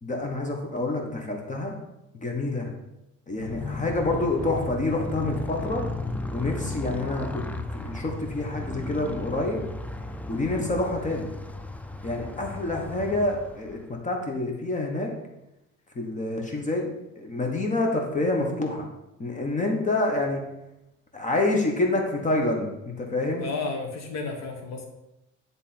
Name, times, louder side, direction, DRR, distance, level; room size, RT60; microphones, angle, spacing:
voice 1, 0.0-1.7 2.1-2.7 3.3-5.8 6.3-9.6 10.3-11.3 12.0-13.8 14.0-15.1 15.9-16.9 17.2-18.9 19.2-20.4 21.1-23.4, left 2 dB, 25° left, 1 dB, 1.2 m, -27 dB
Motorcycle, 3.3-14.0, left 2 dB, 5° left, 0.3 m, -35 dB
voice 2, 23.4-24.9, left 3 dB, 60° left, 3 dB, 1.5 m, -32 dB
9.8 x 3.5 x 4.3 m, 0.92 s
cardioid pair, 110°, 30 cm